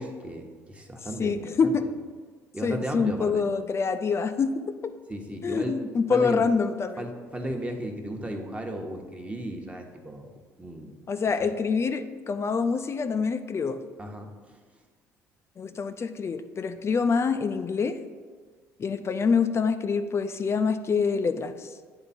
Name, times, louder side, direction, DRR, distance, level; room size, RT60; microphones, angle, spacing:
voice 1, 0.0-1.7 2.5-3.4 5.1-5.8 6.1-6.5 7.0-10.9 11.4-11.5 14.0-14.6, right 1 dB, 15° right, 3 dB, 1.1 m, -35 dB
voice 2, 1.2-1.9 2.6-4.6 5.4-7.0 11.1-13.8 15.6-18.0 18.8-21.7, left 5 dB, 35° left, 9 dB, 0.4 m, -26 dB
8.7 x 3.4 x 4.2 m, 1.5 s
hypercardioid pair, 60°, 8 cm